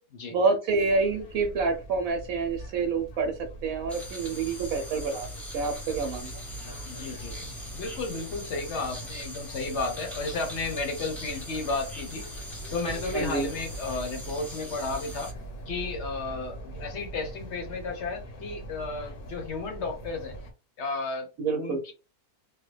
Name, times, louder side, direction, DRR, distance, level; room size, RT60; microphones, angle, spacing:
voice 1, 0.3-5.3 5.5-6.3 13.1-13.5 21.4-21.8, right 4 dB, 75° right, 1.0 m, -27 dB
sound 1, 0.7-20.5, right 1 dB, 90° left, 1.4 m, -42 dB
sound 2, 3.9-15.3, left 1 dB, ahead, 0.6 m, -42 dB
voice 2, 6.9-12.3 12.7-15.3 15.7-20.4 20.8-21.3 21.6-21.9, left 3 dB, 60° left, 0.9 m, -33 dB
3.2 x 2.2 x 3.2 m
omnidirectional pair, 1.5 m